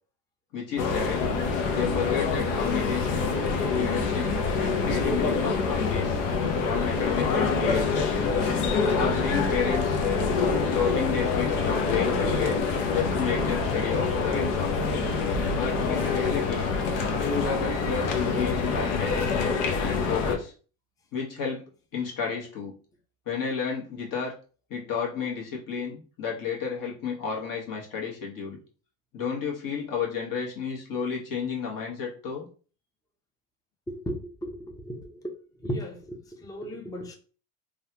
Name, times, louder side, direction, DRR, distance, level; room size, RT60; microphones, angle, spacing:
voice 1, 0.5-1.2 1.7-3.3 3.7-6.3 6.6-8.2 8.8-10.0 10.7-12.6 12.9-14.9 15.5-16.7 17.2-20.5 21.1-22.7 23.3-24.3 24.7-28.6 29.1-32.5, left 6 dB, 45° left, -1 dB, 1.4 m, -32 dB
sound 1, 0.8-20.4, left 4 dB, 70° left, 0.8 m, -26 dB
voice 2, 33.9-34.6 34.8-35.3 35.6-37.1, equal, 10° left, 4 dB, 0.6 m, -35 dB
3.3 x 2.3 x 2.8 m, 0.39 s
supercardioid pair, 90°, 44 cm